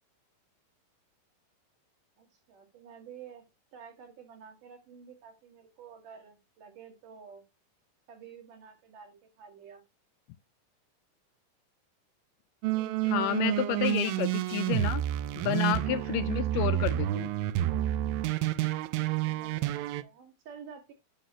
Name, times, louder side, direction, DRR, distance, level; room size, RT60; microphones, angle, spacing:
voice 1, 2.2-3.4 3.7-7.4 8.1-9.8 12.7-13.6 19.0-20.9, right 7 dB, 65° right, 3.3 m, -50 dB
sound 1, 12.6-20.0, right 14 dB, 85° right, 2.3 m, -29 dB
voice 2, 13.1-15.0 15.4-17.3, left 13 dB, 80° left, 2.0 m, -30 dB
10.0 x 5.8 x 2.9 m
omnidirectional pair, 4.1 m